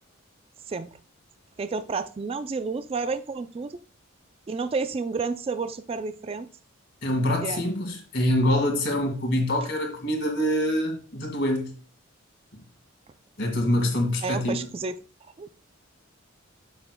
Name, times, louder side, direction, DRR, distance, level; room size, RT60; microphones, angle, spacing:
voice 1, 1.6-3.8 4.5-6.5 7.4-7.6 14.2-15.0 15.4-15.5, right 4 dB, 30° right, 0.3 m, -30 dB
voice 2, 7.0-11.7 12.5-12.6 13.4-14.7, left 1 dB, 60° left, 2.0 m, -25 dB
8.8 x 6.8 x 2.2 m
head